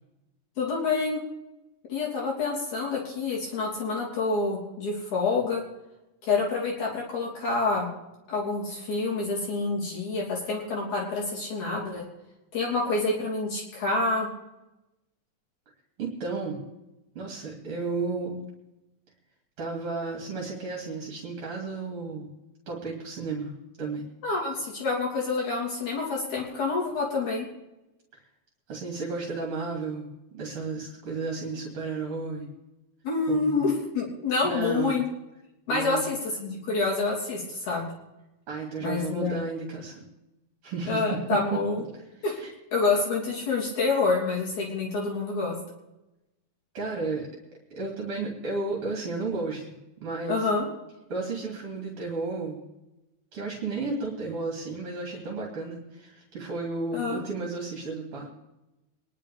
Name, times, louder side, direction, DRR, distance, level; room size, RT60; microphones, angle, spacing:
voice 1, 0.6-1.2 1.9-5.6 6.2-7.9 8.3-12.0 12.5-14.3 24.2-27.5 33.0-35.0 35.7-37.9 38.8-39.5 40.9-41.8 42.2-42.4 42.7-45.6 50.3-50.7 56.9-57.2, left 3 dB, 70° left, -4 dB, 4.7 m, -27 dB
voice 2, 16.0-16.6 17.1-18.4 19.6-22.3 22.7-24.0 28.7-32.5 33.3-33.6 34.4-35.0 35.7-36.0 38.5-40.0 40.6-41.0 42.3-42.5 46.7-47.3 47.7-49.7 50.0-50.5 51.1-52.6 53.3-58.3, right 3 dB, 50° right, -2 dB, 3.0 m, -33 dB
24.5 x 11.0 x 3.5 m, 0.97 s
omnidirectional pair, 3.5 m